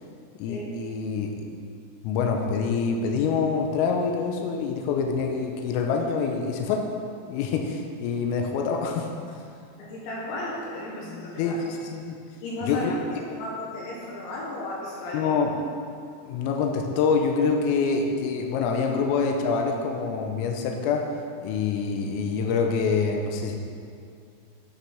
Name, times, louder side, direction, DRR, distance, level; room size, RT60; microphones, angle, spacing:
voice 1, 0.4-1.6 2.0-6.9 7.3-9.1 11.4-12.2 12.6-13.2 15.1-15.6 16.3-21.1 21.4-23.6, left 5 dB, 85° left, 2 dB, 3.4 m, -26 dB
voice 2, 9.8-11.6 12.4-12.9 13.3-15.3, left 1 dB, 70° left, -4 dB, 3.3 m, -34 dB
11.5 x 5.9 x 5.8 m, 2.4 s
omnidirectional pair, 6.0 m